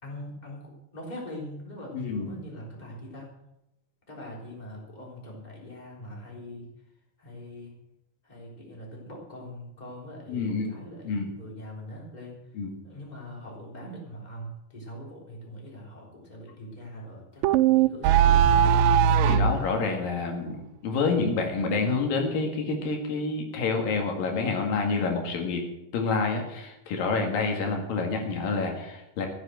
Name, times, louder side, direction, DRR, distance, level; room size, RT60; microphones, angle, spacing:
voice 1, 0.0-3.3 4.1-6.7 7.2-7.7 8.2-12.4 12.8-18.7, left 1 dB, 10° left, -2 dB, 3.4 m, -42 dB
voice 2, 1.9-2.3 10.3-10.8 11.1-11.3 12.5-12.7 19.2-25.6 25.9-29.3, left 4 dB, 85° left, 3 dB, 3.7 m, -28 dB
sound 1, 17.4-19.6, right 8 dB, 85° right, 2.3 m, -19 dB
14.5 x 8.1 x 7.7 m, 0.90 s
omnidirectional pair, 3.9 m